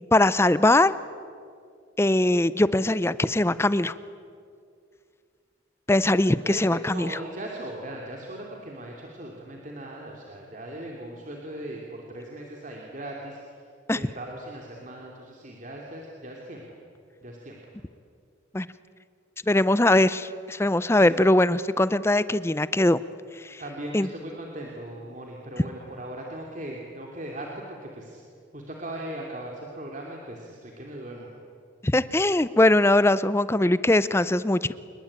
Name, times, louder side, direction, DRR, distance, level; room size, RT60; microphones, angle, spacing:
voice 1, 0.1-0.9 2.0-3.9 5.9-7.2 13.9-14.0 18.5-18.7 19.5-23.0 23.4-23.6 23.9-24.1 31.8-34.7, left 1 dB, 15° left, 16 dB, 0.5 m, -21 dB
voice 2, 6.4-13.4 13.9-16.6 17.2-17.6 20.9-21.2 23.6-28.2 28.5-31.3, right 1 dB, 40° right, -1 dB, 3.0 m, -39 dB
27.5 x 22.0 x 8.8 m, 2.3 s
head